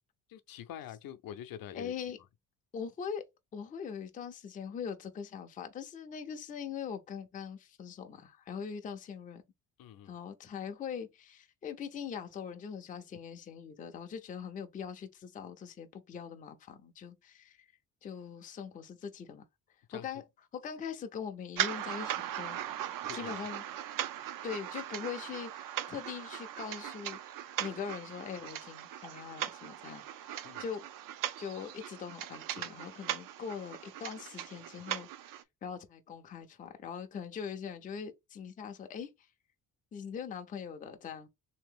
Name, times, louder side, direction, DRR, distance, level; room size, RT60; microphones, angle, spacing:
voice 1, 0.3-1.9 9.8-10.1 19.9-20.1 23.1-23.3 30.4-30.6, left 10 dB, 70° left, 0.6 m, -45 dB
voice 2, 1.7-2.2 2.7-3.2 3.5-9.4 10.1-17.6 18.0-19.4 19.9-20.2 20.5-22.6 23.1-23.6 24.4-27.2 27.6-30.8 31.4-35.1 35.6-39.1 39.9-41.3, left 7 dB, 25° left, 0.4 m, -42 dB
sound 1, 21.6-35.4, right 11 dB, 65° right, 0.5 m, -39 dB
3.4 x 2.8 x 3.5 m
cardioid pair, 175°, 36 cm